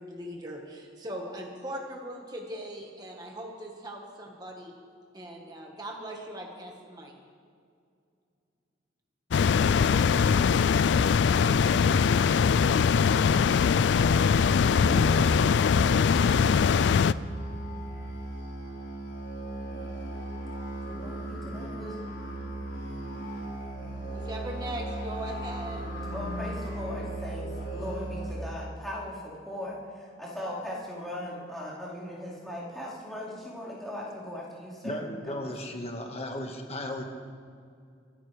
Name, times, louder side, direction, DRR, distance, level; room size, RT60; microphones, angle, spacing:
voice 1, 0.0-4.7 5.1-7.1 24.1-26.0, right 1 dB, 20° right, 0 dB, 1.5 m, -40 dB
sound 1, 9.3-17.1, left 6 dB, 70° left, 0.3 m, -22 dB
Musical instrument, 14.7-28.3, right 1 dB, 90° left, 4.3 m, -36 dB
voice 2, 20.9-22.0 26.1-35.0 35.3-35.7, left 1 dB, ahead, -10 dB, 4.5 m, -39 dB
voice 3, 34.8-37.0, left 1 dB, 35° left, 2 dB, 1.7 m, -35 dB
24.5 x 13.0 x 3.4 m, 2.3 s
head